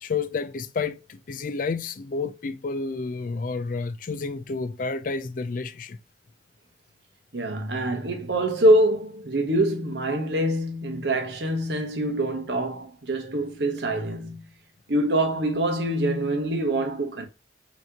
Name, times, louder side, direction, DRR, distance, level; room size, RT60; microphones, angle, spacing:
voice 1, 0.0-6.0, left 4 dB, 50° left, 0.4 m, -30 dB
voice 2, 7.3-14.4 14.9-17.2, right 1 dB, 70° right, 1.0 m, -24 dB
5.6 x 2.9 x 2.8 m
head